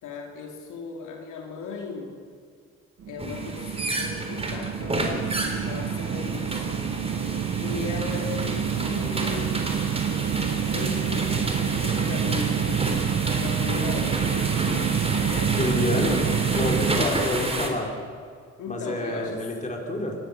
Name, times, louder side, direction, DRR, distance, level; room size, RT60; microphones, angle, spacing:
voice 1, 0.0-2.2 3.1-6.8 7.2-9.9 10.4-14.3 15.2-17.2 18.6-19.5, left 4 dB, 80° left, 1 dB, 3.3 m, -37 dB
sound 1, 3.0-17.1, right 8 dB, 50° right, 1.2 m, -27 dB
sound 2, 3.2-17.7, right 2 dB, 20° right, 3.9 m, -30 dB
voice 2, 15.5-16.2 16.5-17.9 18.7-20.2, left 1 dB, 25° left, 1 dB, 4.7 m, -28 dB
24.0 x 19.0 x 7.0 m, 2.1 s
cardioid pair, 90°, 30 cm